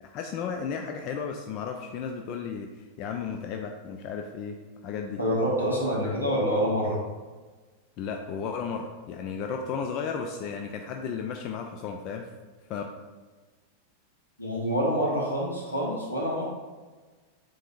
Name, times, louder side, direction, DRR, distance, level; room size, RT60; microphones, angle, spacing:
voice 1, 0.0-5.2 5.9-6.4 8.0-12.3 12.7-12.8, left 6 dB, 40° left, 3 dB, 0.3 m, -34 dB
voice 2, 5.2-7.0 14.4-16.4, equal, 80° left, -3 dB, 1.2 m, -26 dB
7.3 x 2.6 x 2.5 m, 1.3 s
figure-of-eight pair, 90°, 0 cm